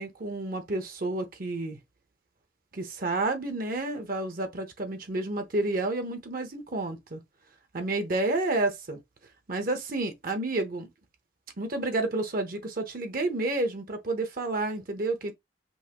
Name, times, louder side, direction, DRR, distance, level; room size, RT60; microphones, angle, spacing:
voice 1, 0.0-1.8 2.7-7.2 7.7-9.0 9.5-10.9 11.6-15.3, right 2 dB, 50° right, 0.8 m, -30 dB
5.5 x 2.7 x 2.9 m
head